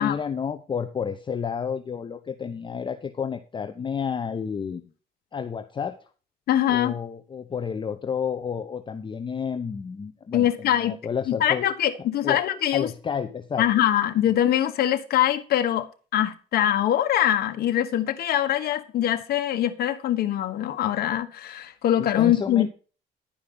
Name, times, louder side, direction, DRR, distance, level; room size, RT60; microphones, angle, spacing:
voice 1, 0.0-4.9 5.3-6.0 6.7-11.6 12.2-12.4 12.7-13.7 22.0-22.7, left 6 dB, 30° left, 0.8 m, -30 dB
voice 2, 6.5-7.0 10.3-11.0 11.4-12.9 13.6-22.7, left 11 dB, 65° left, 1.3 m, -23 dB
11.5 x 5.2 x 6.9 m
cardioid pair, 110°, 17 cm